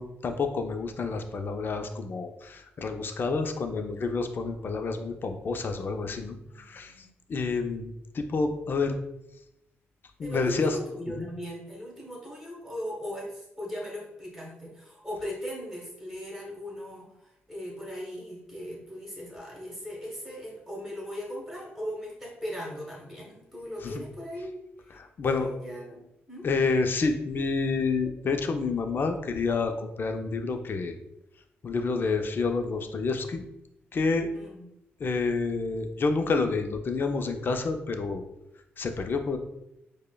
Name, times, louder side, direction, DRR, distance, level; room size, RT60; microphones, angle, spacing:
voice 1, 0.0-6.9 7.3-7.9 8.1-9.0 10.2-10.7 11.2-11.3 25.0-25.5 26.4-30.9 31.6-33.4 33.9-34.3 35.0-38.2 38.8-39.4, left 4 dB, 50° left, 6 dB, 0.4 m, -29 dB
voice 2, 6.5-7.5 10.2-26.5 34.3-34.7, equal, ahead, -4 dB, 1.3 m, -38 dB
4.8 x 2.1 x 2.2 m, 0.85 s
cardioid pair, 70°, 5 cm